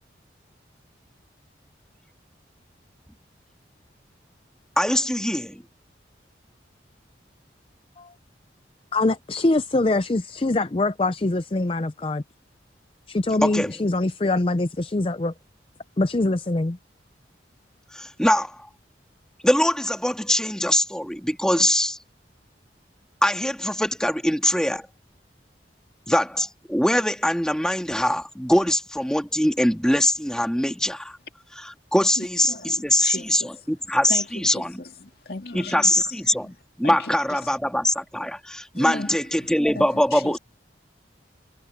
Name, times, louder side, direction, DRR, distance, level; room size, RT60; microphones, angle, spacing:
voice 1, 4.8-5.6 13.4-13.7 17.9-18.6 19.4-22.0 23.2-24.9 26.1-31.2 31.6-33.4 33.7-34.8 35.5-36.5 36.8-40.4, left 1 dB, 5° left, 2.1 m, -22 dB
voice 2, 8.9-12.2 13.1-15.3 16.0-16.8, left 2 dB, 30° left, 0.5 m, -23 dB
voice 3, 32.2-33.6 34.1-36.6 36.8-37.4 38.7-40.4, left 2 dB, 55° left, 2.5 m, -37 dB
head